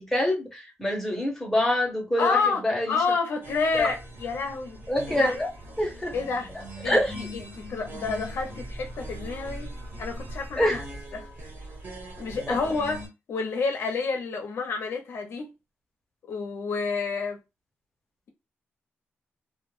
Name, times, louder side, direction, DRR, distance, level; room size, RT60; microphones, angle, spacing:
voice 1, 0.0-3.0 3.7-3.9 4.9-5.5 5.8-6.1 6.8-7.3 10.6-10.8 12.5-12.6, left 1 dB, 5° left, 0.7 m, -25 dB
voice 2, 2.2-4.8 5.2-5.3 6.1-6.5 6.8-9.7 10.0-10.8 11.1-11.3 12.2-13.0 13.3-15.5 16.3-17.4, left 4 dB, 75° left, 0.6 m, -29 dB
sound 1, 3.4-13.1, equal, 60° right, 1.2 m, -40 dB
2.2 x 2.1 x 2.9 m
wide cardioid pair, 165°, 4 cm